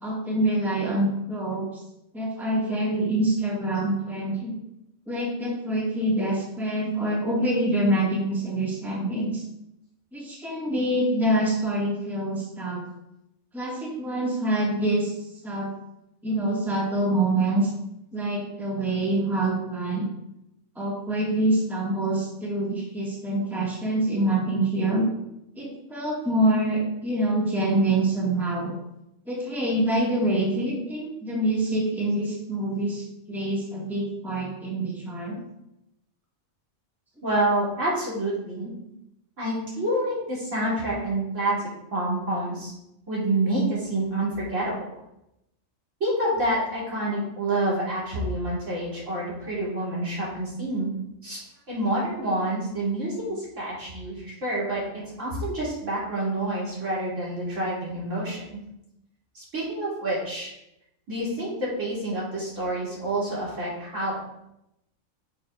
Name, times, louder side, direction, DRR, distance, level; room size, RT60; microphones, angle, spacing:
voice 1, 0.0-1.7 2.1-4.6 5.1-9.4 10.1-12.8 13.5-15.2 15.4-15.7 16.2-17.7 18.1-20.0 20.8-25.1 25.6-28.7 29.3-35.4, right 1 dB, ahead, -5 dB, 1.8 m, -25 dB
voice 2, 37.2-38.7 39.4-41.6 41.9-42.7 43.1-44.9 46.0-50.9 51.2-58.6 59.3-60.5 61.1-64.2, right 1 dB, 65° right, -7 dB, 3.3 m, -28 dB
10.0 x 6.4 x 2.5 m, 0.85 s
omnidirectional pair, 1.4 m